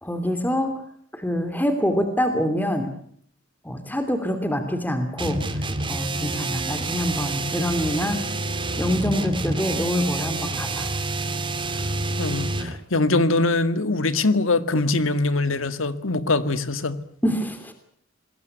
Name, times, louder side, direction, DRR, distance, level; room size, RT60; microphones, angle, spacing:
voice 1, 0.0-0.7 1.1-2.9 3.6-5.4 5.9-8.2 8.8-10.9 17.2-17.7, equal, 10° left, 2.8 m, -25 dB
sound 1, 5.2-12.8, right 2 dB, 25° right, 2.7 m, -28 dB
voice 2, 12.2-17.0, left 2 dB, 85° left, 1.9 m, -22 dB
26.5 x 20.5 x 8.2 m
head